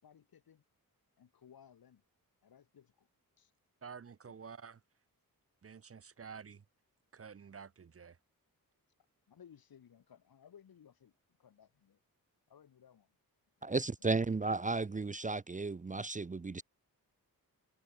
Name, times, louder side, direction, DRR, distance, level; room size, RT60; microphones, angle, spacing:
voice 1, 0.0-0.6 1.2-2.0 2.4-3.1 3.4-3.5 4.2-4.4 9.3-11.1 11.4-12.0 12.5-13.2 13.6-14.3, left 8 dB, 80° left, 4.0 m, -61 dB
voice 2, 3.8-4.8 5.6-6.6 7.1-8.2, right 6 dB, 40° right, 1.1 m, -50 dB
voice 3, 13.6-16.6, right 3 dB, 20° right, 0.7 m, -34 dB
wide cardioid pair, 155°, 36 cm